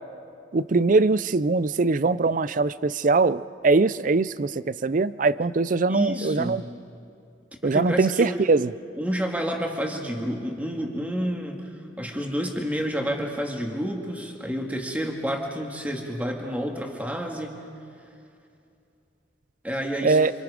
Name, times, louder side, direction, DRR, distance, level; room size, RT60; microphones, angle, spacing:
voice 1, 0.5-6.6 7.6-8.7 20.0-20.3, right 3 dB, 45° right, 17 dB, 0.5 m, -22 dB
voice 2, 5.9-6.7 7.6-8.4 8.9-11.7 12.0-17.5 19.6-20.2, equal, 10° right, 1 dB, 2.1 m, -29 dB
28.0 x 27.0 x 5.1 m, 2.5 s
head